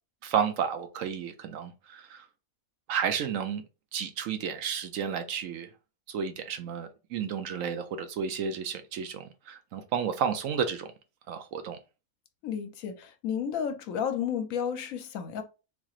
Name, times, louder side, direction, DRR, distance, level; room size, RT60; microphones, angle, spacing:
voice 1, 0.2-2.2 2.9-3.6 3.9-5.7 6.1-10.9 11.3-11.8, right 7 dB, 70° right, 0.9 m, -32 dB
voice 2, 12.4-15.4, left 8 dB, 70° left, 1.0 m, -32 dB
3.9 x 2.9 x 2.4 m
omnidirectional pair, 1.5 m